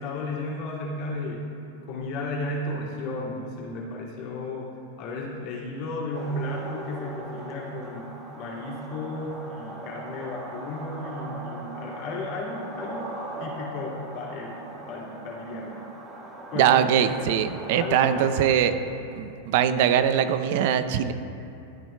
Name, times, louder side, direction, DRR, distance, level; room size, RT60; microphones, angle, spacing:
voice 1, 0.0-1.4 1.9-4.7 5.0-13.1 13.4-15.9 16.5-17.1 17.7-18.4, left 2 dB, 50° left, -4 dB, 2.2 m, -34 dB
sound 1, 6.1-18.6, right 2 dB, 25° right, 1.5 m, -40 dB
voice 2, 16.5-18.7 19.2-21.1, right 9 dB, 60° right, 10 dB, 0.5 m, -22 dB
15.0 x 9.1 x 2.2 m, 2.6 s
hypercardioid pair, 115°, 0 cm